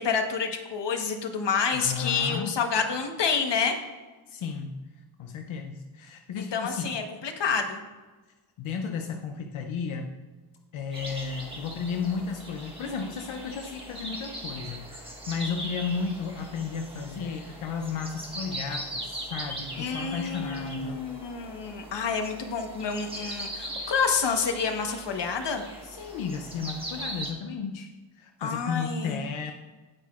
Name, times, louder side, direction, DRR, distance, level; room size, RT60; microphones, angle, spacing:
voice 1, 0.0-3.8 6.4-7.8 19.7-25.6 28.4-29.2, left 5 dB, 60° left, 4 dB, 1.2 m, -28 dB
voice 2, 1.7-2.6 4.3-6.9 8.6-10.2 10.7-21.1 25.8-27.9 28.1-29.5, left 5 dB, 85° left, 4 dB, 0.7 m, -33 dB
sound 1, 10.9-27.3, right 1 dB, 10° right, 1.4 m, -40 dB
17.0 x 5.8 x 2.4 m, 1.2 s
wide cardioid pair, 150°, 47 cm